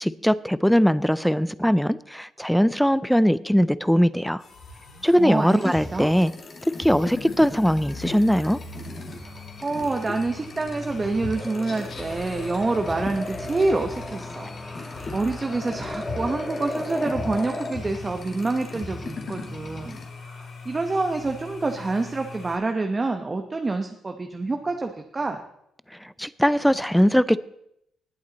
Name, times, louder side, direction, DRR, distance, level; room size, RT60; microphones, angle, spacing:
voice 1, 0.0-4.4 5.0-6.3 6.8-8.6 26.2-27.4, equal, ahead, 17 dB, 0.5 m, -20 dB
sound 1, 4.4-22.6, left 3 dB, 65° left, 6.6 m, -41 dB
voice 2, 5.2-6.1 9.2-20.0 20.3-25.4, right 3 dB, 25° right, 5 dB, 1.0 m, -27 dB
sound 2, 5.5-20.0, left 2 dB, 40° left, 2.0 m, -39 dB
sound 3, 11.3-17.7, left 1 dB, 20° left, 1.6 m, -35 dB
19.0 x 8.6 x 4.1 m, 0.77 s
cardioid pair, 90°, 0 cm